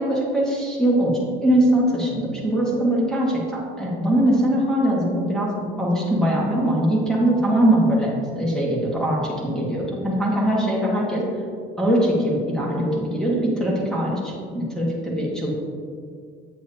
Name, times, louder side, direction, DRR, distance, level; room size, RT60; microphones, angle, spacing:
voice 1, 0.0-8.1 8.4-11.2 11.8-15.5, right 1 dB, 5° left, -5 dB, 1.4 m, -21 dB
8.2 x 7.6 x 2.8 m, 2.2 s
cardioid pair, 145°, 19 cm